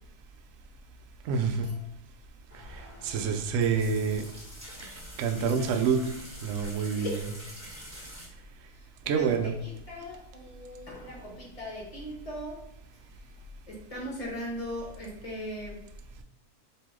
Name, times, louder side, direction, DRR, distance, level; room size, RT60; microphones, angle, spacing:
voice 1, 1.2-1.7 2.7-4.3 5.2-6.1 6.4-7.2 9.1-9.5, right 6 dB, 65° right, 5 dB, 0.9 m, -27 dB
sound 1, 2.5-8.3, equal, 10° right, 1.5 m, -45 dB
voice 2, 5.5-5.8 6.9-7.3 8.7-12.6 12.9-13.0 13.7-15.8 16.1-16.2, left 1 dB, 25° left, -3 dB, 1.1 m, -39 dB
4.7 x 2.9 x 3.6 m, 0.81 s
omnidirectional pair, 1.6 m